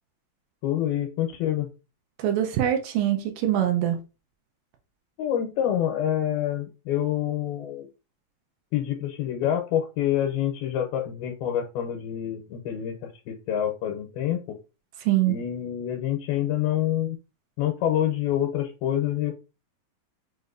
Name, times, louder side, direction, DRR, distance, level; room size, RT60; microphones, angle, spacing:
voice 1, 0.6-1.7 5.2-7.9 8.7-14.6 15.3-17.2 17.6-19.3, left 11 dB, 80° left, 2.5 m, -27 dB
voice 2, 2.2-4.0 15.1-15.4, right 12 dB, 80° right, 2.1 m, -23 dB
6.4 x 2.6 x 2.5 m
omnidirectional pair, 4.3 m